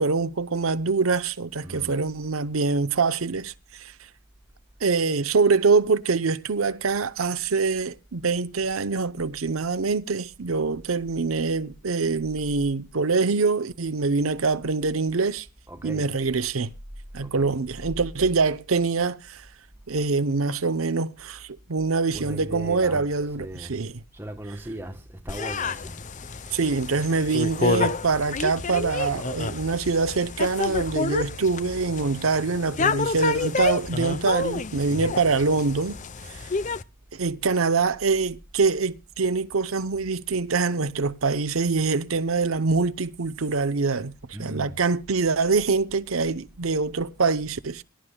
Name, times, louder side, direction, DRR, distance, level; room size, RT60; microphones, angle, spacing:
voice 1, 0.0-3.9 4.8-15.5 15.8-16.7 17.1-19.5 19.9-24.0 26.5-36.0 36.3-36.4 37.1-47.8, right 4 dB, 85° right, 0.8 m, -24 dB
voice 2, 1.6-2.0 15.7-16.1 17.2-17.6 22.1-23.1 23.3-23.8 24.1-26.0 34.9-35.2 44.3-44.8 47.2-47.3, right 1 dB, 10° right, 1.7 m, -38 dB
sound 1, 25.3-36.8, left 4 dB, 35° left, 0.7 m, -29 dB
23.5 x 11.5 x 2.2 m
head